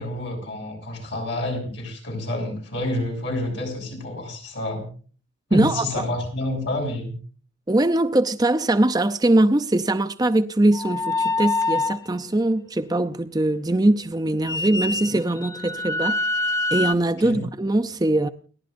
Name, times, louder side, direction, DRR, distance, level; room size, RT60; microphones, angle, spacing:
voice 1, 0.0-4.9 5.5-7.2 17.2-17.4, left 1 dB, 60° left, 7.3 m, -29 dB
voice 2, 5.5-5.8 7.7-16.2 16.7-18.3, right 1 dB, 20° right, 0.5 m, -21 dB
sound 1, 10.7-12.1 14.4-16.9, left 2 dB, 15° left, 0.7 m, -25 dB
29.5 x 11.5 x 2.6 m
head